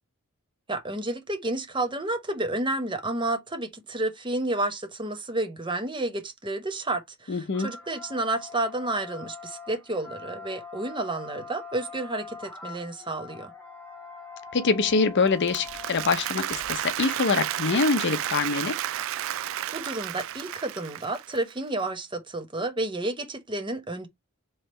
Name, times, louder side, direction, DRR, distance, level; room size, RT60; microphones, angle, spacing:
voice 1, 0.7-13.5 19.7-24.1, right 2 dB, 20° right, 1.0 m, -31 dB
voice 2, 7.3-7.7 14.5-18.8, left 4 dB, 55° left, 0.6 m, -24 dB
sound 1, 7.5-19.0, left 4 dB, 10° left, 1.3 m, -44 dB
Applause, 15.3-21.5, right 12 dB, 60° right, 0.4 m, -32 dB
3.5 x 3.2 x 4.3 m
head